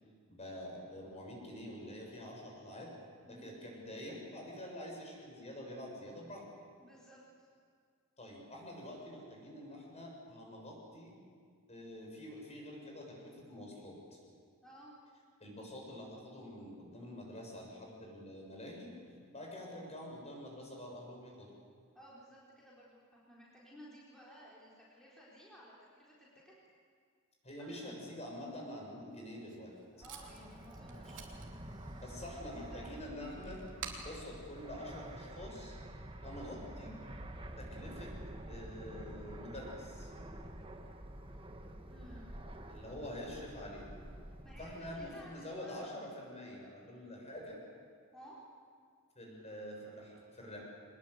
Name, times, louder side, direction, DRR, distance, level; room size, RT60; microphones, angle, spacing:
voice 1, 0.3-2.9 3.2-6.4 8.2-11.1 11.7-14.0 15.4-18.9 19.3-21.5 27.4-29.8 31.9-33.6 34.0-35.8 36.2-36.9 37.6-38.1 38.5-40.1 42.7-43.8 44.6-47.6 49.2-50.6, left 1 dB, 30° left, -1 dB, 6.8 m, -46 dB
voice 2, 6.8-7.5 14.6-14.9 21.9-26.5 27.6-28.1 29.9-32.9 36.4-36.6 41.9-42.4 44.4-44.7 44.9-45.9 48.1-48.4, equal, ahead, -7 dB, 4.3 m, -56 dB
Packing tape duct tape, 29.1-35.6, right 6 dB, 60° right, 3.3 m, -52 dB
Fixed-wing aircraft airplane, 30.0-45.1, right 1 dB, 25° right, 1.5 m, -48 dB
24.0 x 20.5 x 8.1 m, 2.1 s
head